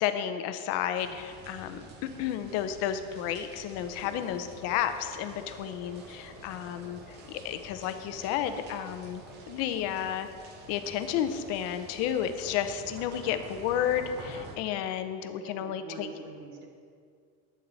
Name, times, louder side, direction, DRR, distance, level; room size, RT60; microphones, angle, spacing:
voice 1, 0.0-1.8 2.2-10.3 10.7-16.1, left 10 dB, 50° left, 9 dB, 0.7 m, -32 dB
sound 1, 0.9-14.6, right 3 dB, 30° right, 0.8 m, -49 dB
sound 2, 3.3-14.9, left 2 dB, ahead, 2.5 m, -53 dB
voice 2, 15.3-16.7, right 3 dB, 55° right, 1 dB, 1.8 m, -45 dB
11.5 x 8.7 x 4.0 m, 2.2 s
cardioid pair, 180°, 32 cm